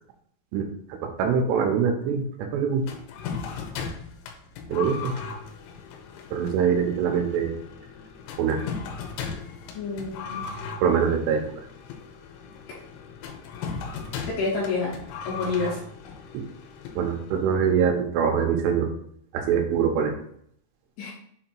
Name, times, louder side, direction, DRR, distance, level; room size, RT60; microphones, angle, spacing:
voice 1, 0.5-2.8 4.7-5.1 6.3-7.5 8.4-8.6 10.8-11.4 16.3-16.4 17.0-18.9 19.3-20.1, right 7 dB, 80° right, 3 dB, 3.3 m, -24 dB
sound 1, 2.9-17.6, left 5 dB, 90° left, 3.3 m, -37 dB
voice 2, 9.7-10.5 14.3-14.9 15.2-15.8 21.0-21.1, left 3 dB, 70° left, -5 dB, 2.7 m, -28 dB
7.4 x 2.8 x 4.4 m, 0.66 s
omnidirectional pair, 5.8 m